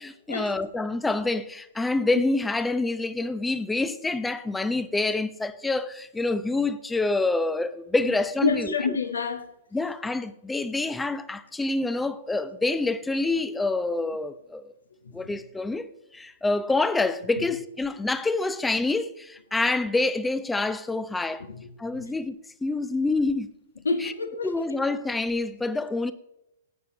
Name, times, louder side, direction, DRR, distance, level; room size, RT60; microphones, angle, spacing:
voice 1, 0.0-9.0 9.7-14.7 15.1-15.9 16.1-21.4 21.8-23.5 24.0-24.1 24.4-26.1, left 2 dB, 5° left, 0.8 m, -27 dB
voice 2, 8.4-9.5 15.0-15.4 17.4-17.5 21.5-22.2 23.8-24.7, left 4 dB, 70° left, 1.6 m, -29 dB
19.5 x 9.4 x 2.9 m
figure-of-eight pair, 110°, 0 cm